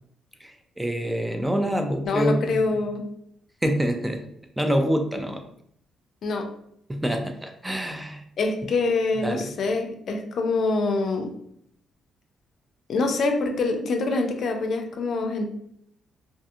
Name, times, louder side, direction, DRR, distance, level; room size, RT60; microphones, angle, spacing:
voice 1, 0.4-2.7 3.6-4.2 4.6-5.4 6.9-8.2 9.2-9.5, equal, 10° right, 5 dB, 0.4 m, -26 dB
voice 2, 2.0-3.0 6.2-6.5 8.4-11.3 12.9-15.5, left 3 dB, 60° left, 4 dB, 0.4 m, -25 dB
2.7 x 2.4 x 2.4 m, 0.70 s
cardioid pair, 90°, 0 cm